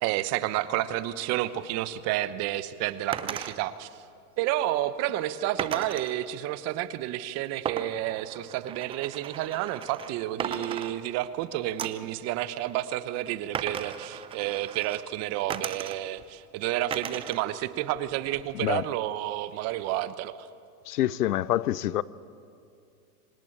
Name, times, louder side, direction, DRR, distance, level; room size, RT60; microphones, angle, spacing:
voice 1, 0.0-3.9 4.4-20.5, right 14 dB, 35° right, 0.9 m, -30 dB
sound 1, 3.1-3.6 5.6-6.2 7.7-10.1 10.4-11.4 11.8-12.1 13.5-15.0 15.5-16.2 16.9-17.4 17.8-18.6, right 8 dB, 10° right, 0.5 m, -36 dB
voice 2, 20.9-22.0, left 13 dB, 75° left, 0.8 m, -26 dB
25.0 x 18.0 x 8.7 m
hypercardioid pair, 130°, 46 cm